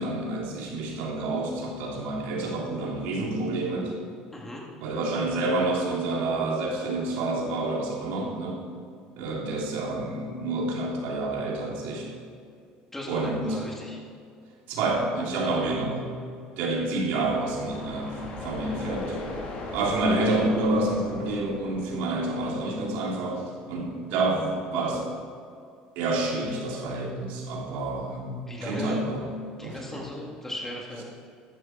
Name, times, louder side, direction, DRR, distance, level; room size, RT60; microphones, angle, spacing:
voice 1, 0.0-3.9 4.8-8.6 9.2-12.1 13.1-13.6 14.7-16.0 16.6-19.2 19.7-23.4 23.7-25.0 26.0-29.3 29.6-30.1, right 2 dB, 70° right, -2 dB, 3.5 m, -28 dB
voice 2, 4.3-4.6 12.9-14.0 15.4-15.7 28.4-29.0 29.6-31.0, left 1 dB, 10° left, -3 dB, 3.7 m, -37 dB
sound 1, 17.2-23.0, left 2 dB, 45° left, 4.0 m, -38 dB
14.5 x 11.5 x 4.8 m, 2.3 s
supercardioid pair, 100°, 3 cm